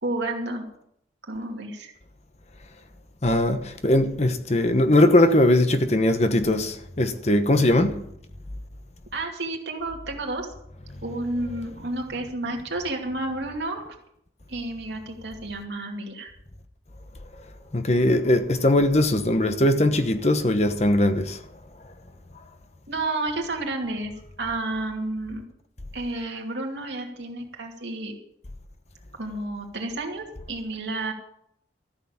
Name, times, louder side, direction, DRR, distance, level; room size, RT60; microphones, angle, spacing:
voice 1, 0.0-0.7 1.2-1.9 9.1-10.5 11.0-14.0 14.5-16.3 22.9-25.4 25.9-28.1 29.2-31.1, right 2 dB, 80° right, 2.5 m, -31 dB
voice 2, 3.2-8.0 17.7-21.4, left 1 dB, 35° left, 1.0 m, -20 dB
14.0 x 6.7 x 8.8 m
head